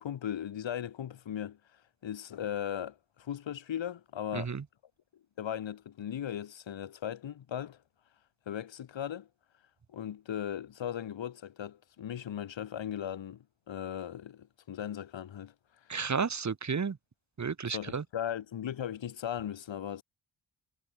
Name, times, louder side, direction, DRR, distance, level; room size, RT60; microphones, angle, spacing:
voice 1, 0.0-1.6 2.0-4.5 5.4-7.8 8.5-9.3 9.9-15.5 17.7-20.0, left 10 dB, 75° left, 1.5 m, -37 dB
voice 2, 4.3-4.6 15.9-17.0 17.4-18.0, right 5 dB, 35° right, 1.2 m, -32 dB
cardioid pair, 50°, 46 cm